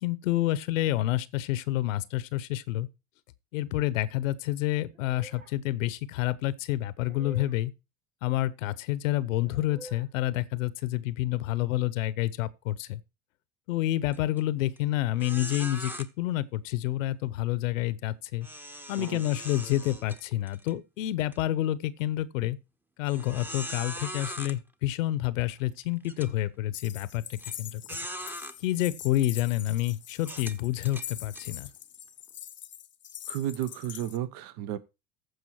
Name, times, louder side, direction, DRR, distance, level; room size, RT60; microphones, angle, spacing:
voice 1, 0.0-2.9 3.5-7.7 8.2-13.0 13.7-18.5 18.9-22.6 23.0-27.8 28.6-31.7, left 15 dB, 80° left, 0.8 m, -29 dB
sound 1, 4.9-5.6 7.0-7.6 9.4-10.0, right 3 dB, 90° right, 2.3 m, -48 dB
sound 2, 14.1-14.4 14.8-14.9 15.2-16.1 18.4-20.7 21.2-21.4 22.0-22.1 23.1-24.6 25.4-25.5 26.0-26.3 27.4-27.5 27.9-28.6 29.2-29.4 30.2-31.5, equal, 5° right, 0.9 m, -40 dB
voice 2, 18.9-19.2 33.3-34.8, right 11 dB, 55° right, 0.9 m, -33 dB
sound 3, 26.7-34.2, left 10 dB, 30° left, 0.8 m, -43 dB
14.5 x 4.9 x 4.6 m
hypercardioid pair, 85°, 39 cm